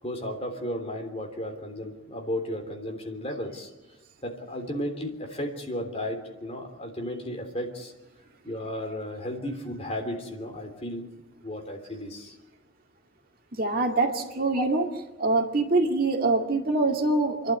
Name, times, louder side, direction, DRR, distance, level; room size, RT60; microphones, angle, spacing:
voice 1, 0.0-3.7 4.2-7.9 8.4-11.0 11.4-12.3 14.5-14.7, left 1 dB, 30° left, 3 dB, 3.3 m, -34 dB
voice 2, 13.5-14.9 15.2-17.5, right 2 dB, 45° right, 3 dB, 2.2 m, -24 dB
29.5 x 12.0 x 9.5 m, 1.1 s
head